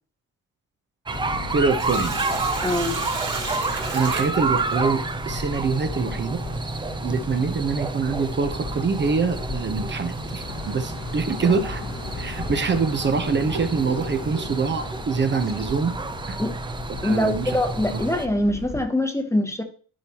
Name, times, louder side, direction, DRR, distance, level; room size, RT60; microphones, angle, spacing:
sound 1, 1.1-18.8, left 4 dB, 45° left, 1.1 m, -37 dB
sound 2, 1.1-18.3, right 3 dB, 15° right, 0.5 m, -30 dB
voice 1, 1.5-2.2 3.6-6.4 7.0-11.8 12.2-15.9 16.3-16.4 17.0-17.5, right 5 dB, 40° right, 0.9 m, -25 dB
Sink (filling or washing), 1.7-5.1 7.5-7.6 9.5-9.7 10.2-10.3 11.1-11.2 11.9-12.0 12.7-14.6, right 3 dB, 55° right, 3.3 m, -34 dB
voice 2, 2.6-3.0 16.4-16.5 17.0-19.6, left 1 dB, 10° left, 0.9 m, -23 dB
10.5 x 4.6 x 2.9 m
cardioid pair, 90°, 30 cm